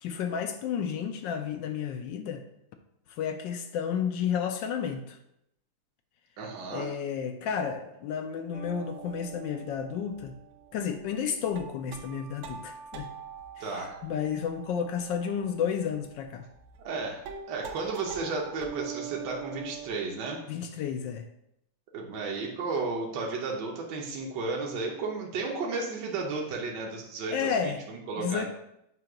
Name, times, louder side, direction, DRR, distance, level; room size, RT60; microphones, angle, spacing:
voice 1, 0.0-2.4 3.2-5.2 6.7-10.3 10.7-13.1 13.7-16.5 20.5-21.2 27.3-27.8 28.2-28.5, left 7 dB, 75° left, 7 dB, 1.1 m, -31 dB
voice 2, 6.4-7.0 13.6-14.0 16.8-20.4 21.9-28.5, right 3 dB, 60° right, -1 dB, 1.3 m, -33 dB
sound 1, 8.5-17.0 17.2-19.9, right 7 dB, 90° right, 1.7 m, -43 dB
7.6 x 2.8 x 5.8 m, 0.80 s
omnidirectional pair, 2.4 m